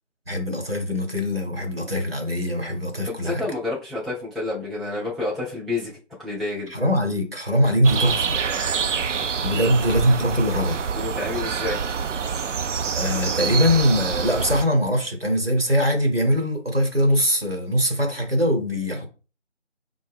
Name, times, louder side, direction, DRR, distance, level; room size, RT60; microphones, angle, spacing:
voice 1, 0.3-3.4 6.7-8.4 9.4-10.8 13.0-19.1, equal, 55° right, 1.0 m, -22 dB
voice 2, 3.1-5.9 6.2-6.8 9.5-9.7 10.9-11.8, left 2 dB, ahead, 0.5 m, -29 dB
sound 1, 7.8-14.7, right 6 dB, 80° right, 0.5 m, -26 dB
4.4 x 2.1 x 3.4 m
figure-of-eight pair, 175°, 36 cm